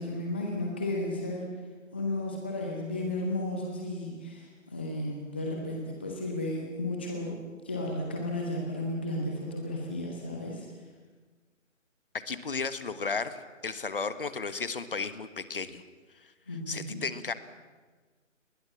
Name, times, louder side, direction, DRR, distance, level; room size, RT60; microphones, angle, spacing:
voice 1, 0.0-1.5 1.9-10.7 16.5-17.0, left 1 dB, 10° left, 0 dB, 0.8 m, -33 dB
voice 2, 12.1-15.8 16.1-17.3, left 4 dB, 45° left, 13 dB, 1.5 m, -34 dB
28.5 x 20.5 x 7.3 m, 1.4 s
figure-of-eight pair, 155°, 39 cm